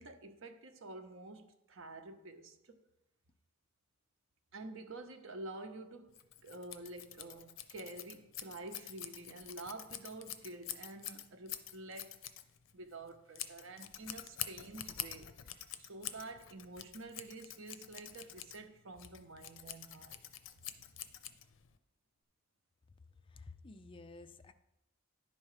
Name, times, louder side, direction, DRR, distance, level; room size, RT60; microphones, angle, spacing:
voice 1, 0.0-2.8 4.5-6.1 6.4-12.2 12.7-15.3 15.8-20.2, right 2 dB, 85° right, 0.8 m, -49 dB
Scissors, 6.1-21.8, left 11 dB, 85° left, 0.6 m, -47 dB
voice 2, 23.1-24.5, left 3 dB, 25° left, 0.4 m, -52 dB
10.5 x 4.2 x 4.9 m
head